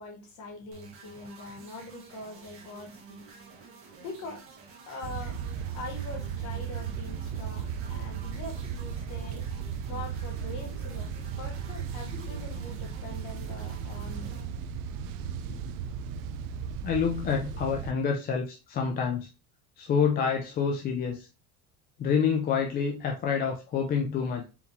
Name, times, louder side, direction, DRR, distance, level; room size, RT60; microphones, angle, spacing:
voice 1, 0.0-3.2 4.0-4.4 4.9-5.4 5.7-9.5 9.9-11.1 11.4-14.3 15.3-15.6, left 2 dB, 50° left, 2 dB, 1.6 m, -43 dB
sound 1, 0.7-14.4, right 4 dB, 35° right, 1.2 m, -51 dB
sound 2, 5.0-17.9, right 7 dB, 60° right, 0.5 m, -36 dB
voice 2, 16.8-19.3 19.8-21.3 22.0-24.5, left 6 dB, 25° left, 1 dB, 0.5 m, -27 dB
4.6 x 3.6 x 2.7 m, 0.30 s
cardioid pair, 155°, 38 cm